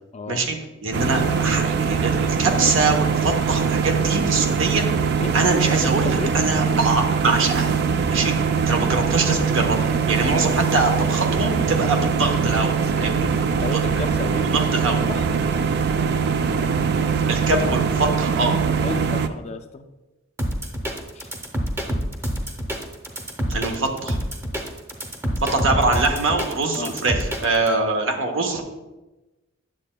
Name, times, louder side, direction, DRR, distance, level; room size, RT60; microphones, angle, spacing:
voice 1, 0.1-0.4 5.2-5.4 5.8-6.3 13.5-14.5 15.1-15.3 18.8-19.9 21.1-21.3 26.7-26.9, left 3 dB, 30° left, 6 dB, 0.4 m, -32 dB
voice 2, 0.8-4.8 5.3-7.7 8.1-8.3 8.7-13.3 13.7-15.0 17.3-18.6 23.5-24.2 25.4-28.6, right 3 dB, 70° right, 4 dB, 0.9 m, -23 dB
sound 1, 0.9-19.3, right 6 dB, 55° right, 0.4 m, -22 dB
sound 2, 20.4-27.7, equal, 10° right, 0.7 m, -27 dB
9.9 x 7.3 x 2.2 m, 1.1 s
head